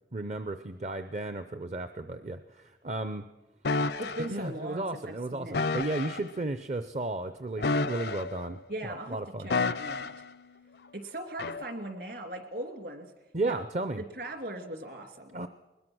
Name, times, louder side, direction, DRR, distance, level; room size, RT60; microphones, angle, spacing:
voice 1, 0.1-3.3 4.3-9.5 13.3-14.0 15.3-15.5, right 2 dB, 40° right, 10 dB, 0.6 m, -34 dB
sound 1, 3.6-4.3 5.5-6.2 7.6-8.5 9.5-10.2 11.4-11.6, left 3 dB, 65° left, 0.6 m, -30 dB
voice 2, 4.0-5.6 8.7-10.2 10.9-13.1 13.4-13.6 14.1-15.4, right 1 dB, 60° right, 6 dB, 2.6 m, -39 dB
21.0 x 20.5 x 6.2 m, 1.1 s
head